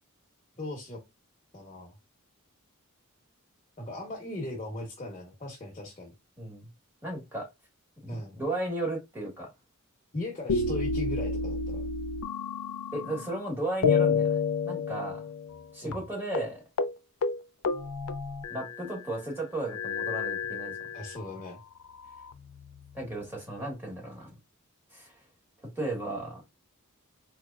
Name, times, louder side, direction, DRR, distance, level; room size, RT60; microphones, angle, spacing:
voice 1, 0.6-1.0 1.5-2.0 3.8-6.1 8.1-8.4 10.1-11.9 15.8-16.0 20.9-21.6, left 2 dB, 30° left, 0.9 m, -38 dB
voice 2, 6.4-6.7 7.0-7.5 8.0-9.5 12.9-14.4 14.6-15.2 15.7-16.6 18.5-20.7 22.9-24.3 24.9-25.1 25.6-26.4, right 1 dB, 10° right, 1.6 m, -35 dB
sound 1, 10.5-13.4 13.8-15.7 15.9-16.0 16.3-16.5 16.8-17.0 17.2-18.9 19.7-21.3 22.0-22.9, left 5 dB, 90° left, 0.4 m, -30 dB
4.0 x 3.1 x 2.3 m
head